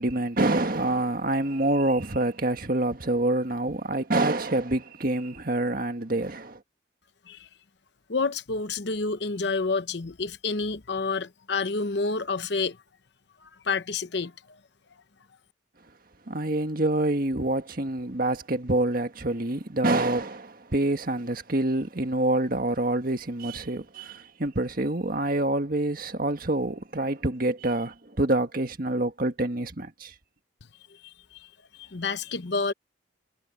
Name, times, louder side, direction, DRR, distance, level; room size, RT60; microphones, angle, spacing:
voice 1, 0.0-6.6 16.3-30.1, right 2 dB, 45° right, 1.7 m, -26 dB
voice 2, 8.1-12.8 13.4-14.3 30.9-32.7, left 4 dB, 60° left, 0.9 m, -29 dB
head